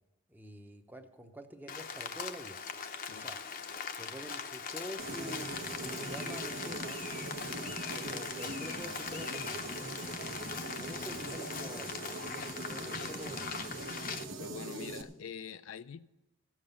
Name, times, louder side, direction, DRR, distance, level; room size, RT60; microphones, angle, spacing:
voice 1, 0.3-2.6 3.1-3.4 4.0-7.2 7.9-9.8 10.8-13.5, equal, 10° right, 0.8 m, -47 dB
Rain, 1.7-14.2, left 6 dB, 45° left, 0.7 m, -41 dB
sound 1, 5.0-15.0, right 2 dB, 70° right, 1.3 m, -42 dB
voice 2, 14.4-16.1, left 7 dB, 80° left, 0.4 m, -45 dB
15.5 x 7.4 x 6.7 m
head